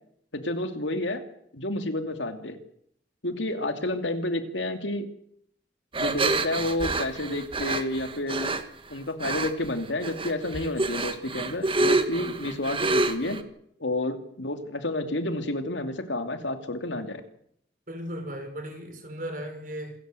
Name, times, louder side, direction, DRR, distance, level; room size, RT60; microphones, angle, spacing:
voice 1, 0.3-1.2 1.5-2.6 3.2-5.1 6.0-8.6 8.9-13.4 13.8-17.2, left 1 dB, 80° left, 7 dB, 2.7 m, -30 dB
sound 1, 5.9-8.6 9.2-9.7 10.0-13.4, right 2 dB, 30° right, 1.6 m, -27 dB
voice 2, 17.9-19.9, equal, 45° right, 6 dB, 5.6 m, -36 dB
27.0 x 14.5 x 7.9 m, 0.71 s
head